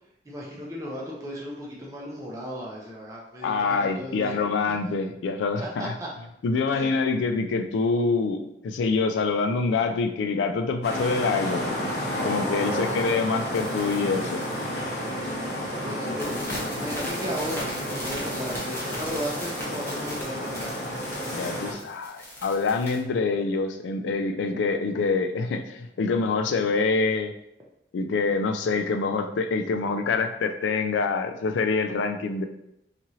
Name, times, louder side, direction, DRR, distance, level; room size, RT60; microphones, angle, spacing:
voice 1, 0.3-4.3 5.6-6.1 6.7-6.9 12.6-13.0 15.8-16.3 16.7-20.7, equal, 20° right, -4 dB, 0.5 m, -35 dB
voice 2, 3.4-5.9 6.4-11.6 12.2-14.5 21.3-27.3 27.9-32.4, left 4 dB, 90° left, 7 dB, 0.3 m, -26 dB
sound 1, 10.8-21.7, equal, 55° left, 0.7 m, -31 dB
sound 2, 12.7-15.2 15.5-15.8 16.1-23.0, left 1 dB, 15° left, 0.7 m, -39 dB
2.9 x 2.4 x 2.7 m, 0.80 s
head